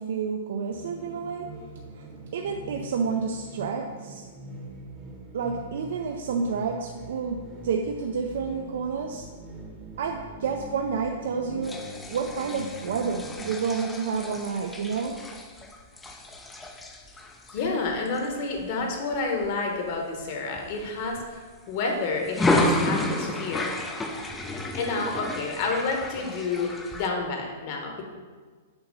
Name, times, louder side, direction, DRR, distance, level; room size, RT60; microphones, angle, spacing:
voice 1, 0.0-1.5 2.0-2.1 2.3-4.3 5.3-9.3 10.0-11.8 12.1-15.3, right 5 dB, 70° right, 3 dB, 0.5 m, -29 dB
sound 1, 0.7-13.5, right 2 dB, 15° right, 0.9 m, -43 dB
sound 2, 11.6-19.5 20.0-20.2 20.6-21.7 22.2-27.1, left 1 dB, 10° left, 0.4 m, -31 dB
voice 2, 17.5-23.8 24.7-28.0, left 3 dB, 45° left, 1 dB, 1.1 m, -29 dB
6.9 x 2.8 x 5.3 m, 1.5 s
hypercardioid pair, 155°, 0 cm